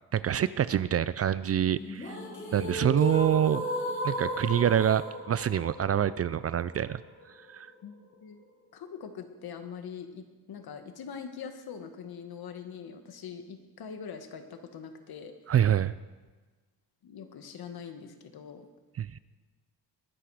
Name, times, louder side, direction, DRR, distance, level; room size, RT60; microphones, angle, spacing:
voice 1, 0.1-2.2 2.5-3.6 4.0-7.0 7.5-7.7 15.5-15.9 19.0-19.2, right 10 dB, 40° right, 16 dB, 0.4 m, -26 dB
sound 1, 1.8-7.8, equal, 30° left, 5.0 m, -35 dB
voice 2, 8.7-15.3 17.0-18.7, left 6 dB, 65° left, 7 dB, 1.9 m, -43 dB
21.0 x 12.0 x 5.0 m, 1.3 s
cardioid pair, 105°, 40 cm